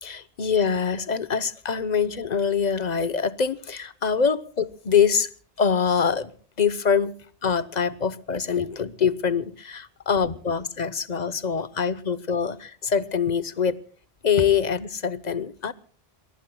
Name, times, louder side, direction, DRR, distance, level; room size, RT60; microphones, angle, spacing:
voice 1, 0.0-5.3 5.6-7.1 7.4-13.8 14.2-15.7, left 6 dB, 45° left, 15 dB, 0.9 m, -24 dB
27.5 x 21.0 x 2.2 m, 0.42 s
omnidirectional pair, 1.1 m